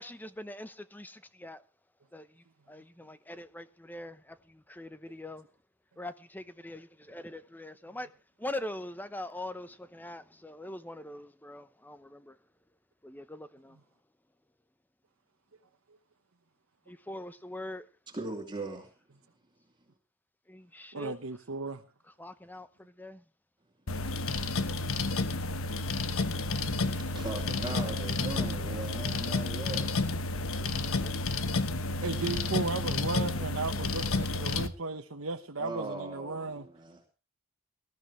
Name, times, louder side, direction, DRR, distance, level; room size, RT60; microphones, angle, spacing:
voice 1, 0.0-1.6 2.1-2.3 2.7-5.4 6.0-8.1 8.4-12.4 13.0-13.8 16.9-17.8 20.5-21.2 22.2-23.2 30.6-31.2, left 1 dB, 10° left, 0.8 m, -43 dB
voice 2, 18.1-18.9 27.1-29.9 35.6-37.0, right 3 dB, 20° right, 2.8 m, -39 dB
voice 3, 20.9-21.8 24.6-25.0 26.8-27.2 32.0-36.7, right 3 dB, 75° right, 1.1 m, -36 dB
sound 1, 23.9-34.7, left 3 dB, 70° left, 1.2 m, -31 dB
20.5 x 13.5 x 3.2 m
head